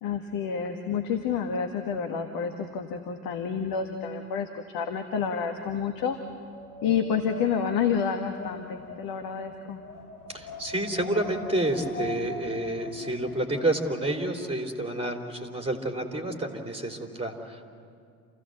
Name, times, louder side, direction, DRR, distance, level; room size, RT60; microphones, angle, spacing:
voice 1, 0.0-6.2 6.8-9.8, left 7 dB, 55° left, 6 dB, 1.6 m, -29 dB
Wind, 5.4-14.4, left 3 dB, 90° left, 1.4 m, -43 dB
voice 2, 10.3-17.6, right 1 dB, 15° right, 3 dB, 3.6 m, -29 dB
28.5 x 16.0 x 7.9 m, 2.2 s
figure-of-eight pair, 60°, 43 cm